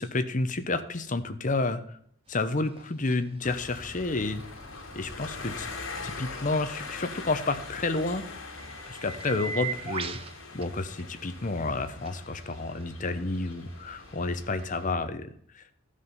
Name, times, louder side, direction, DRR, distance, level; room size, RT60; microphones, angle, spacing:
voice 1, 0.0-1.8 2.3-4.4 4.9-5.7 6.0-8.2 8.9-10.2 10.5-15.3 15.5-15.6, left 3 dB, 40° left, 9 dB, 0.8 m, -30 dB
sound 1, 2.3-14.8, right 5 dB, 25° right, 0.5 m, -44 dB
sound 2, 3.4-14.9, left 3 dB, 80° left, 2.0 m, -42 dB
13.5 x 5.0 x 5.5 m, 0.64 s
head